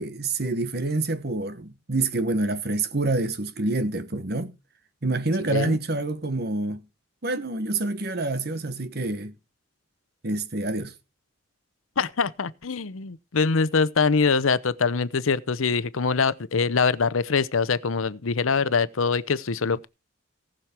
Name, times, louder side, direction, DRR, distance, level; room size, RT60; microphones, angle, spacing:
voice 1, 0.0-4.5 5.0-6.8 7.2-9.3 10.2-10.9, right 2 dB, 50° right, 1.2 m, -27 dB
voice 2, 12.0-19.9, left 5 dB, 85° left, 0.7 m, -24 dB
18.5 x 6.4 x 4.4 m
head